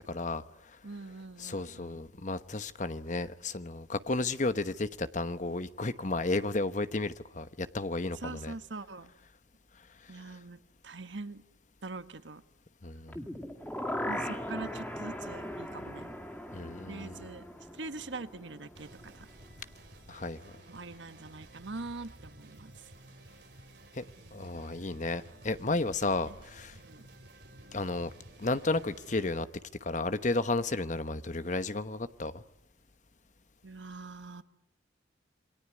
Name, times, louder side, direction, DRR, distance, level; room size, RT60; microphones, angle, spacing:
voice 1, 0.1-0.4 1.4-8.6 10.3-10.4 12.8-13.2 16.5-17.3 20.1-20.5 23.9-24.0 24.3-26.8 27.7-28.1 28.4-29.5 29.8-32.4, left 2 dB, 40° left, 13 dB, 1.1 m, -33 dB
voice 2, 0.8-2.0 8.1-9.1 10.1-10.6 10.8-11.4 11.8-12.4 14.1-16.1 16.9-17.4 17.7-19.3 20.7-22.7 26.3-26.4 26.8-27.0 33.6-34.4, right 3 dB, 80° right, 11 dB, 1.4 m, -43 dB
sound 1, 13.1-19.1 19.4-19.5, left 1 dB, 10° left, 2.3 m, -39 dB
sound 2, 18.8-29.4, right 1 dB, 60° right, 4.3 m, -53 dB
28.0 x 22.0 x 9.6 m, 0.77 s
head